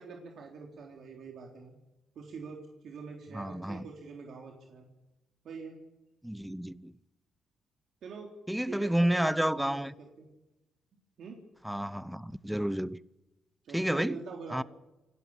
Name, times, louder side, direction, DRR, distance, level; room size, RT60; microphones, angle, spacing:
voice 1, 0.0-1.8 2.2-4.9 5.4-5.8 8.0-8.3 8.6-10.3 11.2-11.4 13.6-14.6, right 5 dB, 65° right, 3.7 m, -44 dB
voice 2, 3.3-3.8 6.2-6.9 8.5-9.9 11.6-13.0 13.7-14.2 14.5-14.6, equal, 5° right, 0.8 m, -30 dB
28.0 x 12.0 x 8.8 m
cardioid pair, 90°, 0 cm